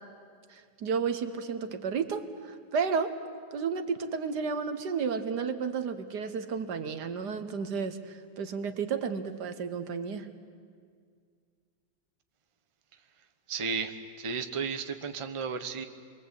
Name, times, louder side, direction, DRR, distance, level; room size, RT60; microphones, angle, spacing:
voice 1, 0.5-3.2 3.5-10.3, right 5 dB, 65° right, 9 dB, 1.7 m, -32 dB
voice 2, 13.5-13.9 14.2-15.8, right 5 dB, 25° right, 7 dB, 0.8 m, -33 dB
28.0 x 22.0 x 8.3 m, 2.1 s
omnidirectional pair, 2.0 m